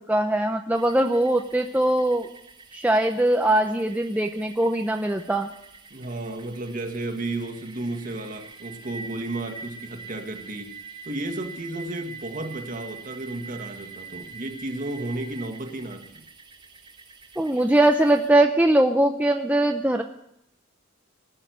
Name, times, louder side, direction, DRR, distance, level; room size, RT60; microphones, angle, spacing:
voice 1, 0.1-2.3 2.7-5.5 17.4-20.0, right 1 dB, 10° right, 3 dB, 0.7 m, -21 dB
sound 1, 0.8-18.3, right 5 dB, 25° right, 2.0 m, -45 dB
voice 2, 5.9-10.7 11.0-16.2, right 2 dB, 40° right, 5 dB, 1.7 m, -33 dB
19.0 x 6.6 x 9.2 m, 0.76 s
head